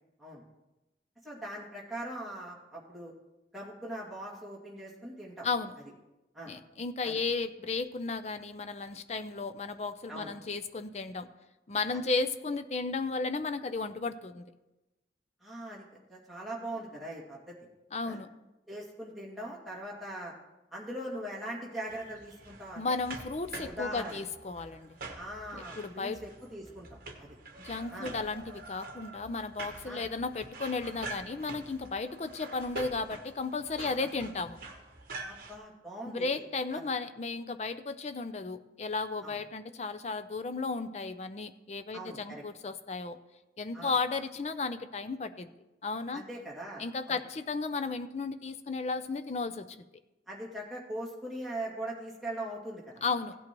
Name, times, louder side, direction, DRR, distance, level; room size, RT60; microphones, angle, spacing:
voice 1, 1.2-3.1 3.5-5.5 6.3-6.5 7.0-7.2 10.1-10.3 11.9-12.0 15.4-15.8 16.1-17.6 18.0-18.2 18.7-20.3 20.7-22.8 23.6-24.2 25.2-27.4 27.9-28.1 29.8-30.1 33.8-33.9 35.2-36.4 36.7-36.9 39.2-39.4 41.9-42.4 43.7-43.9 46.1-47.2 50.3-53.0, right 1 dB, ahead, -5 dB, 2.2 m, -41 dB
voice 2, 6.5-11.3 11.7-14.5 17.9-18.3 22.8-25.0 25.5-26.2 27.6-34.6 36.1-43.2 43.6-45.5 45.8-46.2 46.8-49.6 53.0-53.3, left 4 dB, 35° left, 10 dB, 0.5 m, -34 dB
sound 1, 21.9-35.6, right 2 dB, 50° right, 1.2 m, -46 dB
16.5 x 8.7 x 3.0 m, 1.0 s
head